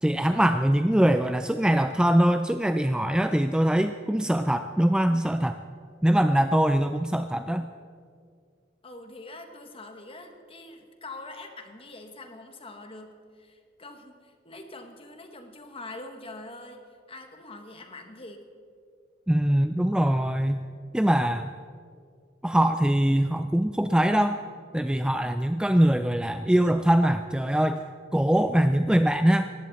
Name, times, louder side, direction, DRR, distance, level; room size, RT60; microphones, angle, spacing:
voice 1, 0.0-5.6 6.0-7.7 19.3-20.6 20.9-21.5 22.4-24.4 24.7-27.8 28.1-29.5, right 1 dB, 5° right, 9 dB, 0.3 m, -22 dB
voice 2, 8.8-18.5, left 2 dB, 30° left, 6 dB, 1.4 m, -44 dB
19.0 x 15.0 x 4.2 m, 2.2 s
head